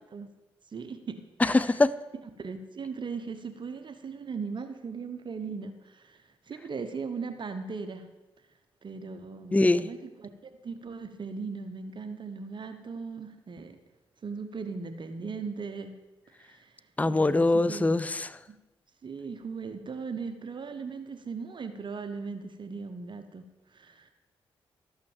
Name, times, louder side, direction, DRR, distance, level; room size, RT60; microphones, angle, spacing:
voice 1, 0.7-1.7 2.4-8.1 8.8-10.3 10.6-13.8 14.2-16.0 16.3-17.9 19.0-24.1, right 5 dB, 50° right, 8 dB, 1.0 m, -38 dB
voice 2, 1.4-1.9 9.5-9.9 17.0-18.4, left 2 dB, 15° left, 17 dB, 0.5 m, -23 dB
13.0 x 6.3 x 7.3 m, 1.1 s
supercardioid pair, 55°, 10 cm